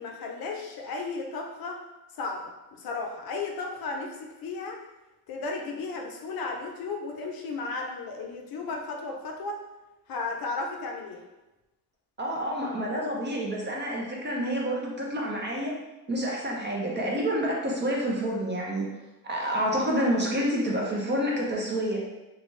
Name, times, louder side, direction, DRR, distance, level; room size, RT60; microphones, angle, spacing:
voice 1, 0.0-1.8 2.1-4.8 5.3-9.6 10.1-11.2, left 3 dB, 60° left, 2 dB, 0.5 m, -34 dB
voice 2, 12.2-15.7 16.1-18.9 19.3-22.0, equal, 25° right, -2 dB, 0.5 m, -28 dB
2.5 x 2.2 x 3.0 m, 1.0 s
cardioid pair, 115°, 40 cm